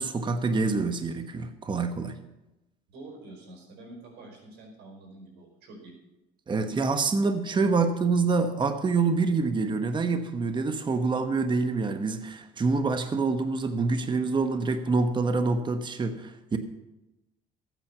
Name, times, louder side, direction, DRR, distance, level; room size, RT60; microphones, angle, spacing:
voice 1, 0.0-2.2 6.5-16.6, right 4 dB, 25° right, 8 dB, 1.0 m, -26 dB
voice 2, 2.9-5.9, right 2 dB, 85° right, 2 dB, 4.6 m, -47 dB
14.5 x 9.2 x 5.9 m, 0.97 s
cardioid pair, 110°, 17 cm